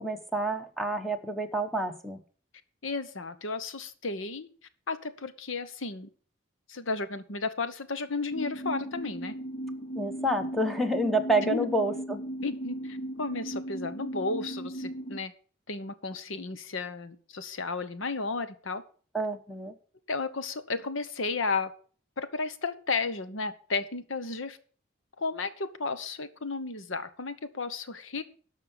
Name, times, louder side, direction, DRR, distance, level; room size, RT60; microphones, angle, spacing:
voice 1, 0.0-2.2 10.0-12.2 19.1-19.7, right 1 dB, ahead, 6 dB, 1.0 m, -28 dB
voice 2, 2.8-4.5 4.9-6.1 6.7-9.3 11.4-11.7 12.4-15.3 15.7-18.8 20.1-21.7 22.2-24.6 25.2-28.2, left 3 dB, 80° left, 12 dB, 1.1 m, -33 dB
sound 1, 8.3-15.2, right 1 dB, 40° left, 0.9 m, -37 dB
12.5 x 5.6 x 7.4 m, 0.43 s
head